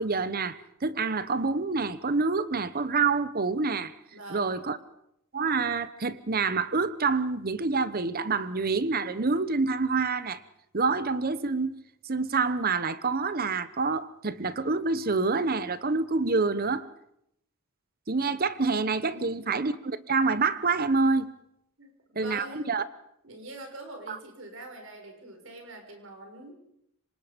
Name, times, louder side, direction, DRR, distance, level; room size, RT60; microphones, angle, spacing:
voice 1, 0.0-3.9 4.3-4.8 5.3-10.4 10.7-11.7 12.0-16.9 18.1-21.3 22.1-22.8 24.1-24.2, right 4 dB, 45° right, 1.0 m, -27 dB
voice 2, 4.1-4.6 19.1-19.6 21.8-22.7 23.2-26.5, right 2 dB, 65° right, 6.1 m, -44 dB
27.0 x 25.0 x 5.2 m
head